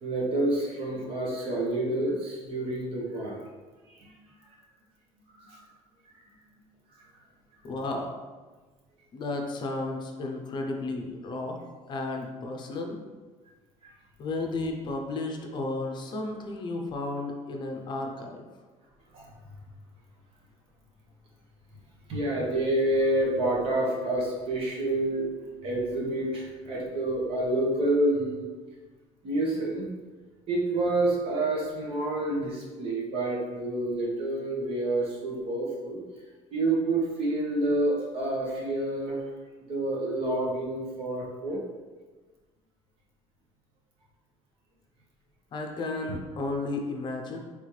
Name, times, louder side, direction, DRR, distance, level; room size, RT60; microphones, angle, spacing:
voice 1, 0.0-3.4 4.0-4.1 4.5-4.6 5.3-5.6 7.0-7.1 13.8-13.9 19.1-19.3 22.1-25.3 25.6-28.5 29.2-29.9 30.5-36.0 36.5-39.2 39.6-41.6, right 1 dB, 50° right, -3 dB, 1.1 m, -28 dB
voice 2, 7.6-8.1 9.1-13.0 14.2-18.4 45.5-47.4, left 2 dB, 40° left, 2 dB, 0.6 m, -33 dB
4.0 x 3.5 x 3.2 m, 1.3 s
cardioid pair, 140°, 12 cm